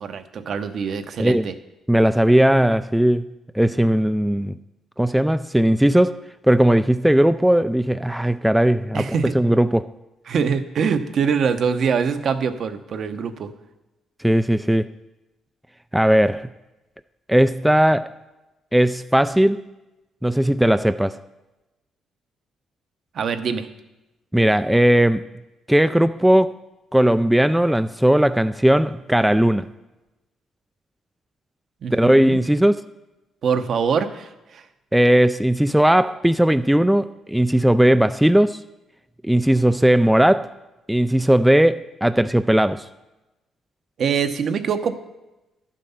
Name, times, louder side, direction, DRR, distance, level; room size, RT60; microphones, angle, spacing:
voice 1, 0.0-1.5 8.9-9.3 10.3-13.5 23.1-23.7 31.8-32.4 33.4-34.6 44.0-45.0, right 6 dB, 60° right, 9 dB, 0.9 m, -24 dB
voice 2, 1.9-3.3 3.5-4.5 5.0-6.2 6.5-9.1 9.3-9.8 14.2-14.9 15.9-16.5 17.3-18.1 18.7-19.6 20.2-21.2 24.3-25.2 25.7-26.6 26.9-29.7 31.9-32.8 34.9-38.6 39.2-40.5 40.9-42.9, right 1 dB, 5° right, 11 dB, 0.3 m, -17 dB
11.0 x 7.5 x 5.6 m, 1.0 s
cardioid pair, 90°, 0 cm